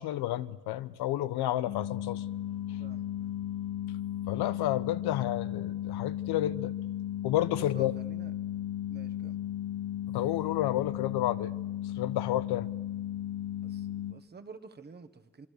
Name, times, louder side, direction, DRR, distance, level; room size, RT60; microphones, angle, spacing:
voice 1, 0.0-2.2 4.3-6.7 7.2-7.9 10.1-11.5 12.0-12.7, left 13 dB, 65° left, 1.0 m, -30 dB
sound 1, 1.7-14.1, left 11 dB, 45° left, 1.1 m, -35 dB
voice 2, 2.8-3.4 7.5-8.3 8.9-9.4 13.6-15.5, right 4 dB, 25° right, 1.5 m, -50 dB
26.0 x 23.0 x 6.7 m
cardioid pair, 130°, 42 cm